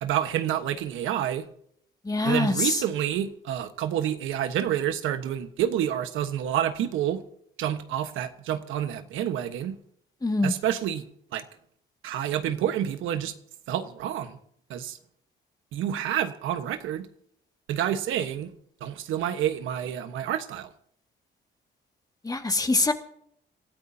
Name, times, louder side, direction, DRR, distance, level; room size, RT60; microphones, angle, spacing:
voice 1, 0.0-1.5 2.2-7.2 7.6-9.8 10.4-11.0 11.3-11.4 12.0-13.3 13.7-14.4 14.7-15.0 15.7-17.1 17.7-18.5 18.8-20.7, right 10 dB, 90° right, 9 dB, 1.3 m, -28 dB
voice 2, 2.0-2.8 10.2-10.5 22.2-22.9, left 2 dB, 20° left, 5 dB, 2.1 m, -24 dB
27.5 x 13.5 x 2.8 m, 0.68 s
cardioid pair, 90°, 20 cm